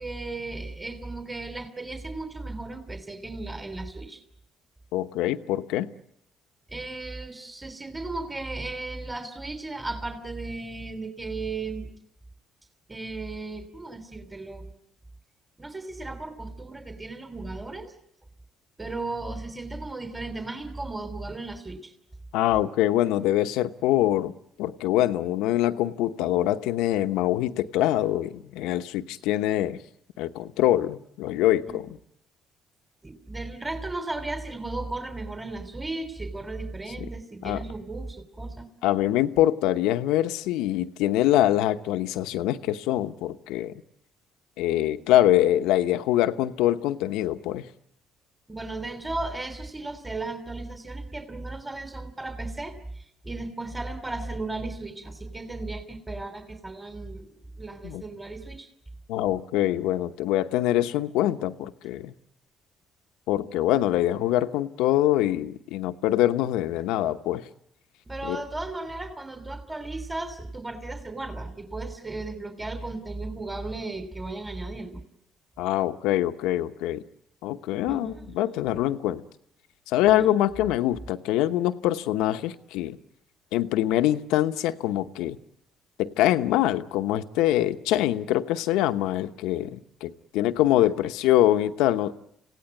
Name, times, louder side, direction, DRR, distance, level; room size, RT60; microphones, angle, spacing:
voice 1, 0.0-4.2 6.7-11.9 12.9-14.7 15.6-17.9 18.8-21.9 31.7-31.8 33.0-38.7 48.5-58.7 68.1-75.0 77.8-78.3 80.1-80.3, right 2 dB, 20° right, 3.1 m, -35 dB
voice 2, 4.9-5.9 22.3-24.3 24.6-29.8 30.2-31.9 37.4-37.6 38.8-43.7 44.6-47.7 57.8-58.0 59.1-62.1 63.3-67.4 68.2-68.4 75.6-77.0 77.4-79.2 79.9-83.0 83.5-85.4 86.0-92.2, left 13 dB, 80° left, 1.0 m, -24 dB
27.0 x 17.0 x 9.4 m
supercardioid pair, 70°, 0 cm